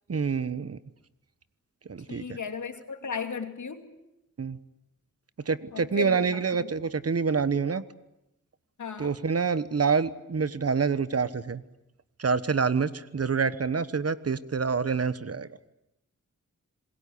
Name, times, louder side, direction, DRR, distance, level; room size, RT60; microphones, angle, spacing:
voice 1, 0.1-0.8 1.9-2.4 4.4-4.6 5.4-7.8 9.0-11.6 12.2-15.5, right 5 dB, 50° right, 1.2 m, -27 dB
voice 2, 2.1-3.9 5.7-6.7 8.8-9.2, left 5 dB, 70° left, 2.5 m, -35 dB
27.0 x 21.0 x 8.5 m
cardioid pair, 60°, 31 cm